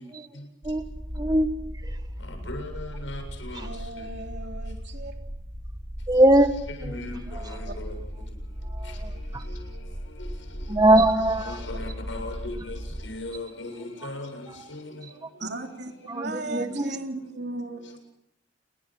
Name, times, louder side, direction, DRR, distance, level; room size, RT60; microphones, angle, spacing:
sound 1, 0.6-13.1, equal, 45° right, 4.7 m, -37 dB
voice 1, 1.2-1.5 6.1-6.5 10.7-11.4 16.1-16.9, right 1 dB, 20° right, 1.5 m, -19 dB
voice 2, 2.5-3.7 6.8-7.2 7.5-7.9 11.4-12.8 13.0-14.3 14.7-14.9, left 2 dB, 85° left, 7.5 m, -37 dB
voice 3, 3.6-5.1 7.7-7.8 9.0-9.6 11.1-11.2 11.5-11.6 15.4-18.0, right 2 dB, 65° right, 3.7 m, -37 dB
29.0 x 22.0 x 6.3 m
head